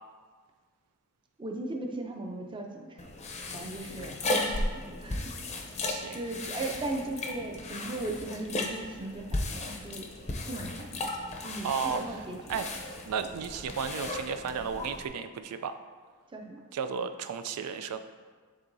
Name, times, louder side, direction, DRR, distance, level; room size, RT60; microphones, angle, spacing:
voice 1, 1.4-3.1 3.5-5.3 6.1-10.1 10.5-11.1 11.4-12.4 16.3-16.6, right 2 dB, 20° right, 2 dB, 0.5 m, -38 dB
sound 1, 3.0-15.1, left 2 dB, 30° left, 0.6 m, -36 dB
sound 2, 3.5-8.0 8.4-8.5, left 4 dB, 75° left, 0.4 m, -55 dB
voice 2, 5.8-6.2 11.6-12.0 12.5-12.7 13.1-15.8 16.7-18.0, right 6 dB, 90° right, 9 dB, 0.4 m, -33 dB
11.0 x 3.7 x 2.6 m, 1.5 s
head